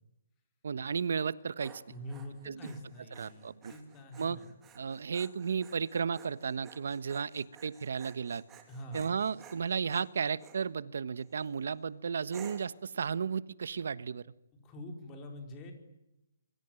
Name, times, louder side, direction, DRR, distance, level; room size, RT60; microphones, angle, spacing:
voice 1, 0.6-1.8 2.5-2.6 3.2-3.7 4.2-4.4 4.7-8.4 8.9-14.2, right 6 dB, 60° right, 17 dB, 1.3 m, -34 dB
Dog, 1.2-10.6 11.2-11.6 12.3-12.8, right 7 dB, 10° right, 2.6 m, -55 dB
voice 2, 1.9-4.5 8.7-9.1 14.6-15.7, equal, 15° left, 4 dB, 4.5 m, -45 dB
26.5 x 23.5 x 9.1 m, 0.91 s
hypercardioid pair, 175°, 0 cm